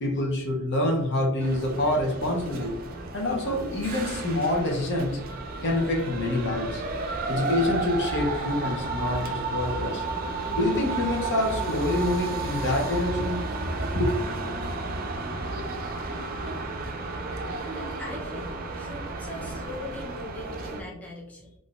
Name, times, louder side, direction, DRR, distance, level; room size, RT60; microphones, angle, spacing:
voice 1, 0.0-2.8 3.1-5.2 5.6-6.8 7.3-10.0 10.5-13.4 13.7-14.1, left 1 dB, 55° left, 0.6 m, -26 dB
sound 1, 1.4-20.8, right 3 dB, 40° right, 0.4 m, -32 dB
voice 2, 17.7-21.5, left 2 dB, 5° left, 0.6 m, -40 dB
3.6 x 2.5 x 2.3 m
head